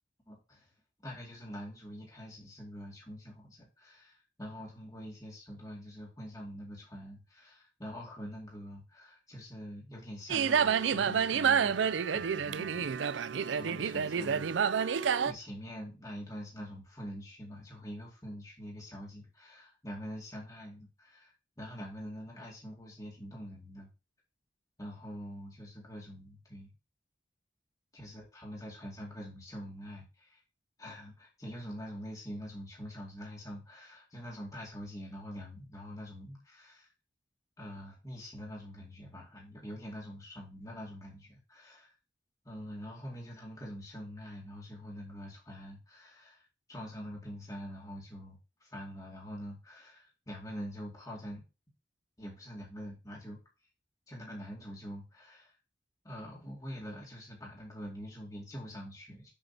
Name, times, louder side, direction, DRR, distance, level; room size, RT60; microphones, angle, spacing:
voice 1, 0.3-0.7 1.0-13.2 13.5-14.9 15.2-23.9 24.8-26.7 27.9-30.4 30.8-36.9 37.6-41.9 42.4-51.4 52.2-53.4 54.1-55.6 56.0-59.3, equal, 20° left, -3 dB, 2.3 m, -45 dB
sound 1, 10.3-15.3, right 7 dB, 80° right, 0.4 m, -29 dB
7.9 x 7.2 x 2.9 m, 0.28 s
head